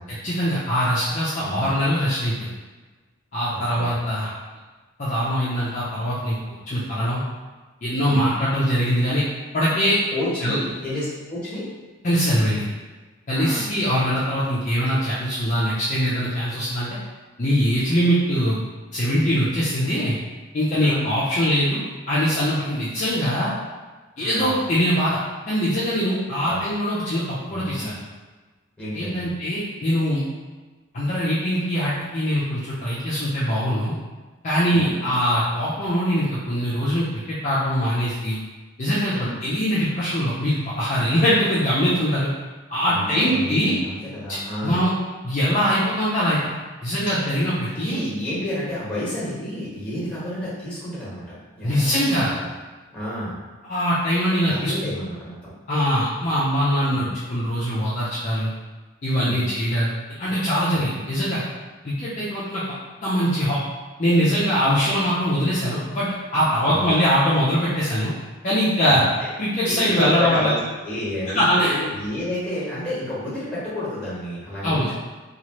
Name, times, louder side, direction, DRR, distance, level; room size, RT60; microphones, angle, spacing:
voice 1, 0.1-2.5 3.3-4.3 5.0-7.2 7.8-9.2 9.5-10.0 10.4-10.6 12.0-12.6 13.3-17.0 17.4-18.6 18.9-20.1 20.5-23.5 24.2-25.2 25.5-27.9 28.9-30.2 30.9-33.9 34.4-38.4 38.8-39.1 39.4-42.3 42.7-43.8 44.3-44.4 44.6-44.9 45.2-46.4 46.8-48.0 51.6-52.3 53.7-54.9 55.7-58.5 59.0-61.4 61.8-62.7 63.0-63.6 64.0-68.1 68.4-69.0 69.4-70.5 71.3-71.7 74.6-75.0, equal, 35° left, -9 dB, 0.5 m, -22 dB
voice 2, 3.5-3.9 8.1-8.3 10.1-11.7 13.3-13.6 20.8-21.0 24.2-24.5 26.5-26.6 27.5-28.0 28.8-29.3 34.7-35.1 39.1-39.3 42.9-44.8 47.7-52.5 52.9-53.3 54.4-55.5 56.9-57.1 59.2-59.5 60.7-61.0 66.7-66.9 68.8-69.0 69.6-70.6 70.8-75.0, left 1 dB, 5° left, -9 dB, 1.1 m, -30 dB
3.0 x 2.4 x 2.9 m, 1.3 s
head